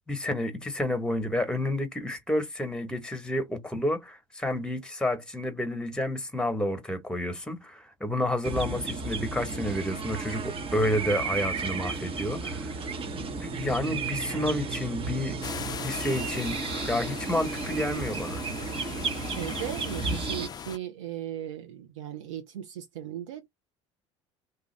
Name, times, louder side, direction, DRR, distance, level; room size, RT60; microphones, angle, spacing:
voice 1, 0.1-12.7 13.1-15.4 15.8-18.4, left 1 dB, 5° left, 1.1 m, -30 dB
sound 1, 8.4-20.5, right 4 dB, 35° right, 0.9 m, -33 dB
sound 2, 15.4-20.8, left 7 dB, 25° left, 0.4 m, -39 dB
voice 2, 19.2-23.5, right 11 dB, 80° right, 0.6 m, -37 dB
2.8 x 2.3 x 3.2 m
hypercardioid pair, 70°, 16 cm